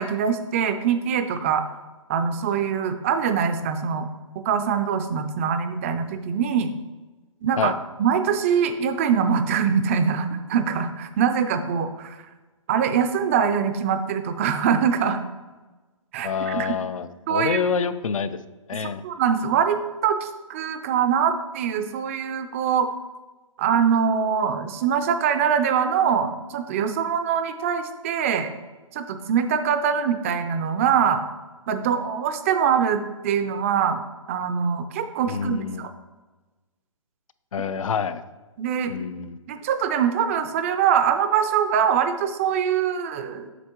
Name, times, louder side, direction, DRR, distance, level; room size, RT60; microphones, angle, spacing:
voice 1, 0.0-1.7 2.1-4.1 4.4-6.7 7.4-7.7 8.0-12.2 12.7-15.2 16.1-16.8 17.3-17.6 18.8-22.9 23.6-28.5 28.9-31.2 31.7-34.0 34.3-35.9 38.6-39.0 39.5-43.5, right 7 dB, 25° right, 9 dB, 0.4 m, -23 dB
voice 2, 16.2-18.3 18.7-19.0 35.3-35.9 37.5-38.2 38.9-39.4, left 6 dB, 75° left, 13 dB, 0.5 m, -27 dB
8.0 x 5.9 x 2.9 m, 1.2 s
hypercardioid pair, 140°, 17 cm